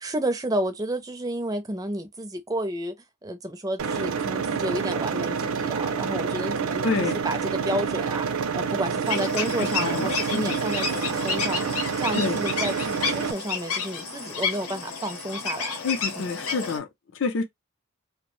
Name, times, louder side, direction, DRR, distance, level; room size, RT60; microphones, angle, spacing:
voice 1, 0.0-2.9 3.2-8.3 8.5-15.7 16.2-16.3, right 1 dB, 15° right, 0.4 m, -31 dB
sound 1, 3.8-13.3, right 6 dB, 75° right, 0.4 m, -28 dB
voice 2, 6.8-7.2 9.6-10.6 12.1-12.4 15.8-16.9 17.2-17.4, left 4 dB, 60° left, 0.5 m, -28 dB
sound 2, 9.1-16.8, left 5 dB, 85° left, 0.8 m, -31 dB
2.6 x 2.1 x 3.0 m
head